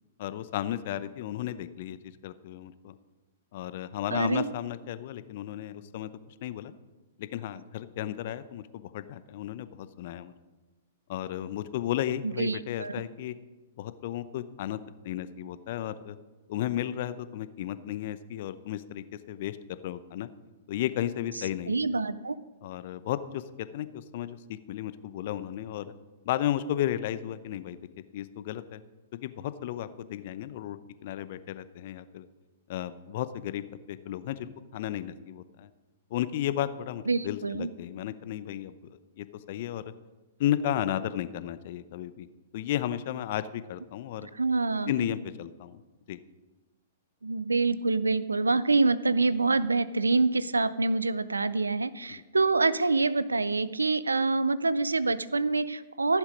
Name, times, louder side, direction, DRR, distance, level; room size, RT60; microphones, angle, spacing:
voice 1, 0.2-2.9 3.5-6.1 6.4-6.7 7.2-10.3 11.1-13.3 13.8-14.8 15.0-16.2 16.5-20.3 20.7-21.8 22.6-25.8 26.2-27.8 28.1-28.8 29.2-32.3 32.7-35.7 36.1-38.7 39.2-39.8 40.4-42.3 42.5-44.3 44.9-45.8 46.1-46.2 52.1-52.2, left 12 dB, 55° left, 14 dB, 0.7 m, -34 dB
voice 2, 4.1-4.5 12.2-13.0 21.7-22.4 37.1-37.7 44.2-45.1 47.2-56.2, right 3 dB, 90° right, 17 dB, 0.4 m, -26 dB
15.0 x 7.3 x 5.2 m, 1.2 s
figure-of-eight pair, 110°, 0 cm